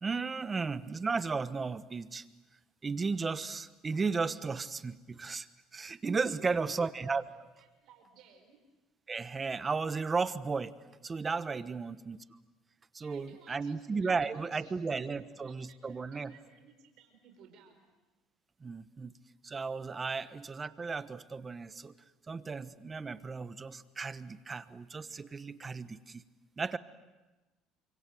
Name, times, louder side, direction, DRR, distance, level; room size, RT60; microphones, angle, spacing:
voice 1, 0.0-2.2 2.8-5.5 5.7-7.2 9.1-10.7 11.0-12.2 12.9-16.3 18.6-19.1 19.4-21.9 22.3-26.2 26.6-26.8, right 4 dB, 25° right, 13 dB, 1.1 m, -34 dB
voice 2, 6.2-8.6 11.7-12.0 13.0-14.8 15.1-17.9, right 6 dB, 65° right, 4 dB, 4.6 m, -58 dB
29.5 x 26.0 x 7.7 m, 1.1 s
supercardioid pair, 100°, 0 cm